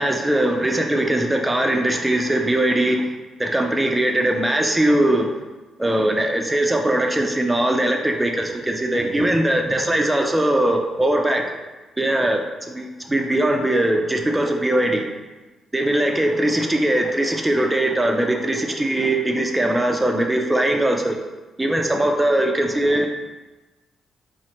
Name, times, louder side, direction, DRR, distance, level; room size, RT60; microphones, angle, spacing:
voice 1, 0.0-3.1 3.4-5.3 5.8-11.6 12.0-15.1 15.7-21.2 21.6-23.1, right 1 dB, 10° right, 2 dB, 0.4 m, -20 dB
2.9 x 2.4 x 4.3 m, 1.1 s
cardioid pair, 115°, 0 cm